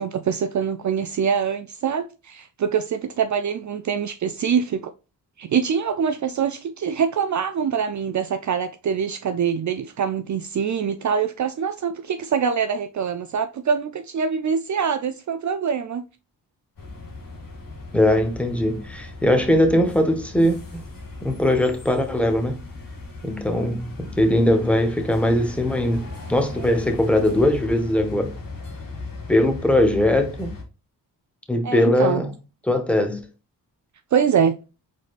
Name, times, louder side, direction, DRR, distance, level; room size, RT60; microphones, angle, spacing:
voice 1, 0.0-4.9 5.4-16.0 31.6-32.2 34.1-34.6, right 7 dB, 50° right, 0.5 m, -24 dB
sound 1, 16.8-30.6, left 3 dB, 55° left, 1.9 m, -37 dB
voice 2, 17.9-20.8 21.2-22.6 23.2-28.3 29.3-30.5 31.5-32.3 32.7-33.2, left 1 dB, 5° left, 1.1 m, -20 dB
4.9 x 4.0 x 2.4 m
cardioid pair, 60°, 39 cm